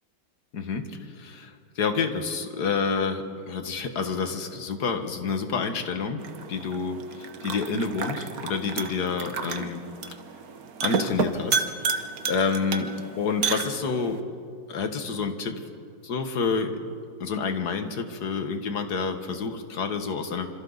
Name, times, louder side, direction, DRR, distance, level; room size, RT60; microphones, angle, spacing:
voice 1, 0.5-6.2 6.5-9.8 10.8-11.7 12.3-12.9 13.2-14.2 14.7-15.6 16.0-16.8 17.2-20.5, left 5 dB, 55° left, 7 dB, 1.9 m, -28 dB
sound 1, 6.2-14.2, right 5 dB, 55° right, 1.4 m, -31 dB
27.0 x 26.5 x 4.1 m, 2.4 s
omnidirectional pair, 2.1 m